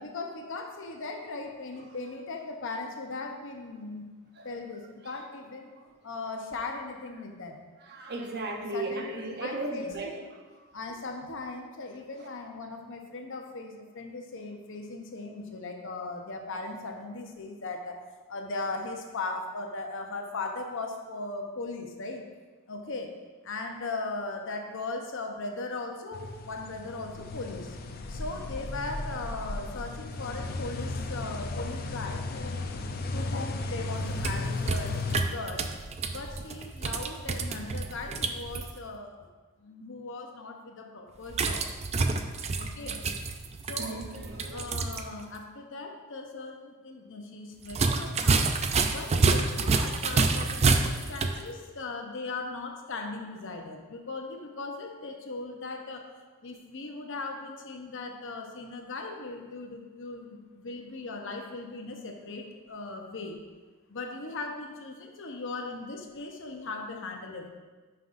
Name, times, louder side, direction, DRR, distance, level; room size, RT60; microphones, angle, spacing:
voice 1, 0.0-4.0 4.4-5.7 6.0-7.6 8.7-10.4 10.7-17.9 18.3-22.2 22.7-23.1 23.4-27.8 28.1-32.7 33.1-35.0 35.3-35.7 36.1-39.1 39.6-41.7 42.6-43.0 43.6-44.1 44.5-48.6 48.9-56.1 56.4-63.4 63.9-67.5, left 3 dB, 60° left, 3 dB, 0.8 m, -38 dB
voice 2, 7.9-10.1 43.8-44.7, right 2 dB, 50° right, 1 dB, 0.9 m, -36 dB
sound 1, 26.1-35.2, left 2 dB, 45° left, 0.5 m, -35 dB
sound 2, 34.0-38.7 41.3-45.0 45.3-45.4 47.7-51.4, right 4 dB, 30° right, 0.4 m, -28 dB
9.2 x 5.6 x 2.6 m, 1.3 s
head